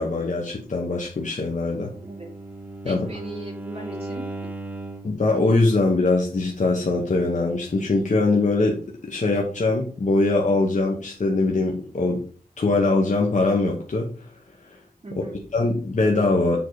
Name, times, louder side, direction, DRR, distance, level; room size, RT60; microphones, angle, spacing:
voice 1, 0.0-1.9 2.8-3.1 5.0-12.2 12.6-14.3 15.1-15.2 15.5-16.6, left 3 dB, 55° left, 0 dB, 1.0 m, -22 dB
Bowed string instrument, 1.6-5.2, right 2 dB, 10° right, 0.8 m, -36 dB
voice 2, 2.0-2.3 2.8-4.2 15.0-15.4, right 2 dB, 40° right, -2 dB, 2.7 m, -37 dB
7.1 x 3.8 x 4.7 m, 0.43 s
wide cardioid pair, 100°, 15 cm